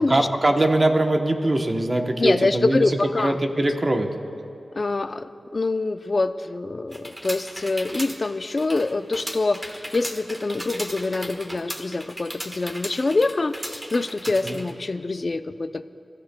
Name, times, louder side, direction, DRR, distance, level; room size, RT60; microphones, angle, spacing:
voice 1, 0.0-2.8 3.2-4.1 14.4-14.6, right 1 dB, 35° right, 4 dB, 0.9 m, -22 dB
voice 2, 2.2-3.4 4.7-15.8, left 3 dB, 45° left, 11 dB, 0.4 m, -25 dB
sound 1, 6.9-14.7, equal, 15° right, 1.3 m, -36 dB
29.5 x 14.5 x 2.2 m, 2.7 s
wide cardioid pair, 90°, 0 cm